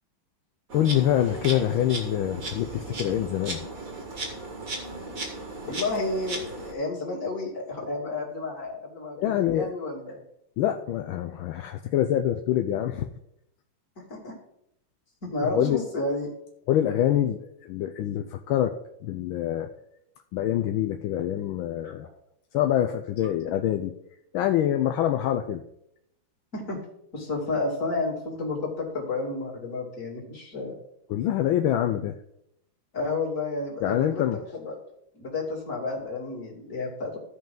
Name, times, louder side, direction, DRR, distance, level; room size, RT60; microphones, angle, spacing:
voice 1, 0.7-3.7 9.2-9.7 10.6-13.1 15.4-15.8 16.7-19.7 20.3-22.1 22.5-23.9 24.3-25.6 31.1-32.2 33.8-34.4, left 11 dB, 80° left, 5 dB, 1.3 m, -25 dB
Insect, 0.7-6.7, right 2 dB, 40° right, 2.0 m, -36 dB
voice 2, 5.6-10.2 14.0-14.4 15.2-16.3 21.8-21.9 26.5-26.8 27.1-30.7 32.9-34.2 34.6-34.7 35.1-37.2, left 3 dB, 35° left, -2 dB, 2.7 m, -31 dB
15.0 x 5.3 x 3.8 m, 0.77 s
omnidirectional pair, 2.3 m